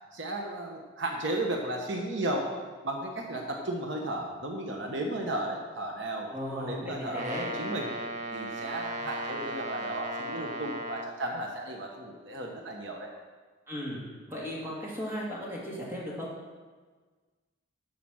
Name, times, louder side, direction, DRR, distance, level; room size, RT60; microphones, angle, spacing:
voice 1, 0.1-2.5 2.8-7.9 8.3-13.1, right 1 dB, 60° right, 1 dB, 1.0 m, -34 dB
voice 2, 6.3-7.5 13.7-14.0 14.3-16.3, equal, 10° right, -6 dB, 2.3 m, -36 dB
Brass instrument, 7.1-11.2, right 1 dB, 35° right, 0.6 m, -36 dB
11.5 x 5.0 x 6.3 m, 1.4 s
head